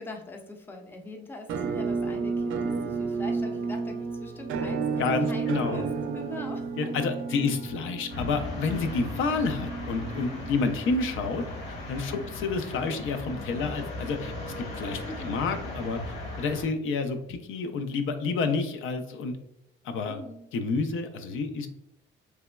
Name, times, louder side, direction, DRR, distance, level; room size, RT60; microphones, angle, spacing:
voice 1, 0.0-5.9 6.1-6.9 7.3-7.5 10.3-10.6 12.0-12.3 15.0-15.4 20.1-20.5, left 2 dB, 10° left, 4 dB, 0.4 m, -43 dB
Musical instrument, 1.5-11.3, right 4 dB, 70° right, 0.5 m, -32 dB
voice 2, 5.0-5.8 6.8-19.3 19.8-20.2 20.5-21.7, left 4 dB, 75° left, 7 dB, 0.5 m, -29 dB
sound 1, 8.1-16.6, left 2 dB, 55° left, 1.1 m, -37 dB
3.3 x 2.9 x 2.2 m, 0.85 s
cardioid pair, 145°, 21 cm